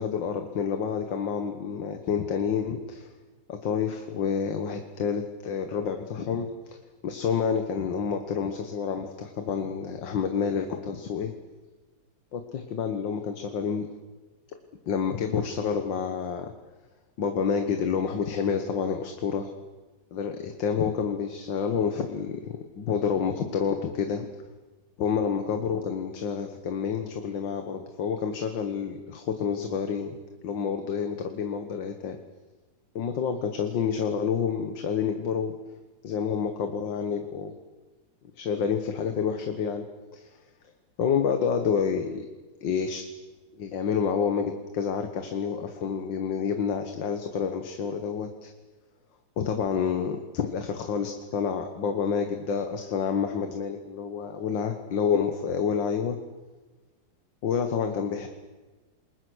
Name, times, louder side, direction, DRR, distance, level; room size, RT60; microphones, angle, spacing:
voice 1, 0.0-3.1 3.5-6.5 7.0-11.3 12.3-13.9 14.9-16.5 17.2-19.5 20.1-24.3 25.0-30.2 30.4-32.2 33.0-35.6 36.0-37.5 38.4-39.9 40.1-40.4 41.0-42.3 42.6-43.0 43.6-48.5 49.4-56.2 57.4-58.3, left 6 dB, 75° left, 6 dB, 2.1 m, -28 dB
28.5 x 21.0 x 6.3 m, 1.3 s
omnidirectional pair, 2.0 m